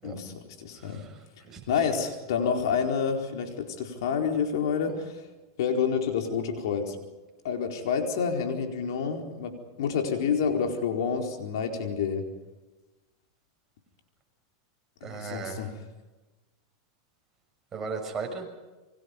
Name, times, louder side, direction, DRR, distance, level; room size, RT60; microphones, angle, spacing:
voice 1, 0.0-1.1 1.7-5.3 5.6-7.0 7.4-12.3 15.0-15.8, left 6 dB, 75° left, 3 dB, 4.5 m, -28 dB
voice 2, 0.8-1.7 4.8-5.0 15.0-15.7 17.7-18.5, right 4 dB, 20° right, 1 dB, 6.8 m, -37 dB
28.5 x 24.5 x 5.4 m, 1.2 s
supercardioid pair, 125°, 2 cm